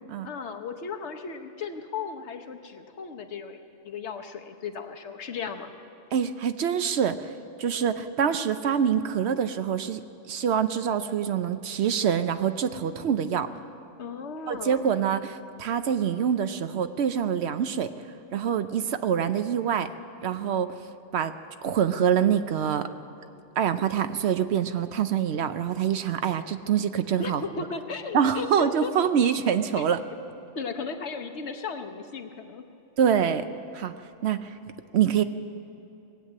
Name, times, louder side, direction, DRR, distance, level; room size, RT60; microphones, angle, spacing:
voice 1, 0.2-5.7 14.0-14.9 27.2-28.9 29.8-29.9 30.1-30.2 30.5-32.6, left 5 dB, 65° left, 6 dB, 1.2 m, -36 dB
voice 2, 6.1-7.3 7.6-13.5 14.5-17.9 18.3-19.9 20.2-20.7 21.1-21.3 21.6-22.9 23.6-27.4 28.1-30.0 33.0-33.4 33.7-33.9 34.2-34.6 34.9-35.2, right 8 dB, 65° right, 10 dB, 0.9 m, -25 dB
20.0 x 8.2 x 8.6 m, 2.9 s
omnidirectional pair, 1.2 m